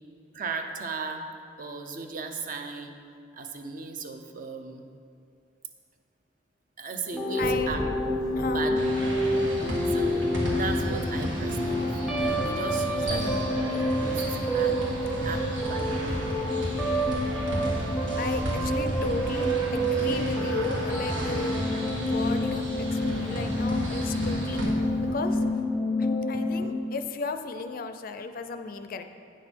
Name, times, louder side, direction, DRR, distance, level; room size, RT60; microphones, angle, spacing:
voice 1, 0.3-1.2 1.6-2.9 3.3-4.9 6.8-7.8 8.5-8.8 9.9-10.3 10.6-13.6 14.0-14.8 15.2-16.2, right 4 dB, 45° right, 5 dB, 0.6 m, -36 dB
sound 1, 7.1-26.7, equal, ahead, 0.7 m, -28 dB
voice 2, 7.3-7.7 8.3-8.9 13.1-13.6 18.2-21.6 22.0-24.9 25.1-25.4 26.0-29.0, left 3 dB, 50° left, 8 dB, 0.4 m, -35 dB
Thunderstorm / Rain, 7.4-25.4, equal, 25° right, 1.6 m, -43 dB
sound 2, 8.8-24.6, equal, 85° right, 1.8 m, -33 dB
8.9 x 6.1 x 4.5 m, 2.3 s
head